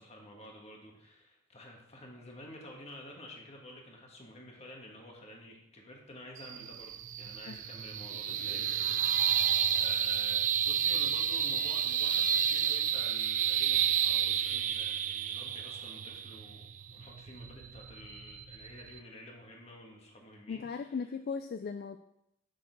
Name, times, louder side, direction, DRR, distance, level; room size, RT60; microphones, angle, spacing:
voice 1, 0.0-9.2 9.7-21.0, left 1 dB, 35° left, 0 dB, 1.6 m, -50 dB
sound 1, 6.4-19.0, right 9 dB, 40° right, 0.4 m, -31 dB
voice 2, 20.5-22.0, left 5 dB, 50° left, 9 dB, 0.3 m, -37 dB
6.6 x 6.4 x 4.6 m, 0.80 s
head